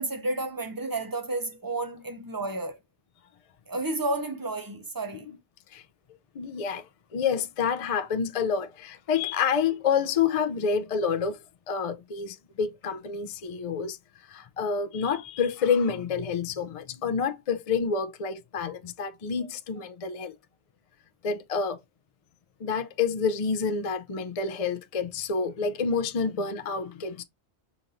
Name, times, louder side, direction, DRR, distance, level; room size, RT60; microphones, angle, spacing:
voice 1, 0.0-2.8 3.7-5.3, right 2 dB, 20° right, 0.7 m, -31 dB
voice 2, 6.3-11.4 11.7-14.0 14.3-20.3 21.2-21.8 22.6-27.2, left 6 dB, 50° left, 0.5 m, -28 dB
5.2 x 2.6 x 2.8 m
omnidirectional pair, 1.1 m